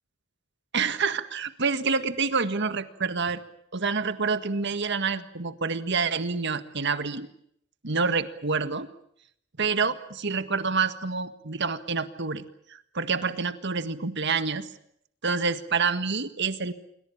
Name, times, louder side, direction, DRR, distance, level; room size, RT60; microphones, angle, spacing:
voice 1, 0.7-3.4 3.7-7.3 7.8-8.9 9.6-12.4 12.7-14.7 15.2-16.7, right 4 dB, 60° right, 11 dB, 1.8 m, -27 dB
27.5 x 23.5 x 7.3 m, 0.71 s
head